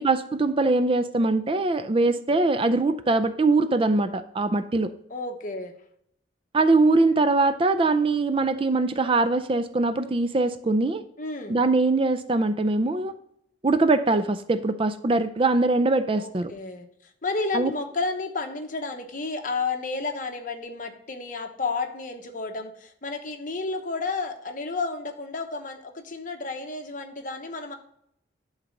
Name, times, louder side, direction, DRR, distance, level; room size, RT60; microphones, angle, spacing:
voice 1, 0.0-4.9 6.5-11.0 11.5-13.1 13.6-16.5 17.5-17.7, right 3 dB, 30° right, 11 dB, 0.4 m, -22 dB
voice 2, 5.1-5.8 11.2-11.6 16.1-27.7, left 3 dB, 45° left, 5 dB, 1.0 m, -31 dB
11.0 x 4.0 x 6.4 m, 0.71 s
head